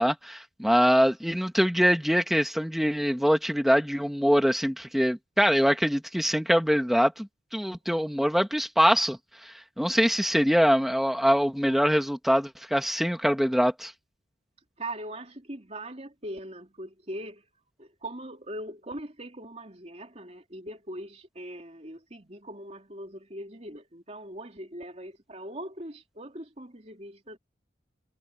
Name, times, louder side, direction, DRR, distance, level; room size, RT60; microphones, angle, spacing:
voice 1, 0.0-13.9, equal, ahead, 2.0 m, -24 dB
voice 2, 14.8-17.4 17.8-27.4, right 1 dB, 35° right, 3.4 m, -41 dB
head